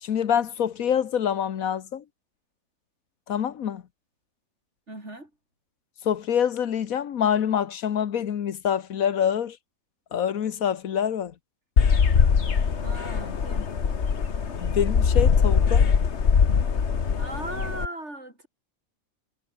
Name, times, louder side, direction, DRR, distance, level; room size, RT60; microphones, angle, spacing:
voice 1, 0.0-2.0 3.3-3.8 6.0-9.6 10.1-11.3 14.6-15.9, left 8 dB, 75° left, 1.5 m, -26 dB
voice 2, 4.9-5.3 12.7-13.7 17.1-18.5, right 1 dB, 50° right, 7.0 m, -37 dB
sound 1, 11.8-17.9, left 6 dB, 55° left, 1.6 m, -22 dB
omnidirectional pair, 1.5 m